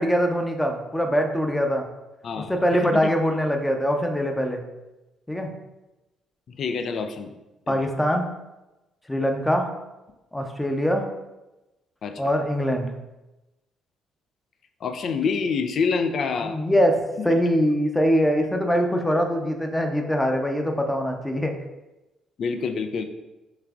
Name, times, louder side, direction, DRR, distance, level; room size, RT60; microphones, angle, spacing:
voice 1, 0.0-1.9 2.5-4.6 5.3-5.5 7.7-8.3 9.1-9.7 10.3-11.1 12.2-12.9 16.4-21.5, equal, 10° left, 3 dB, 0.7 m, -23 dB
voice 2, 2.2-3.1 6.5-7.3 7.7-7.9 12.0-12.2 14.8-16.6 17.2-17.3 22.4-23.0, left 5 dB, 50° left, 7 dB, 0.4 m, -27 dB
6.4 x 3.4 x 2.4 m, 1.0 s
figure-of-eight pair, 45°, 0 cm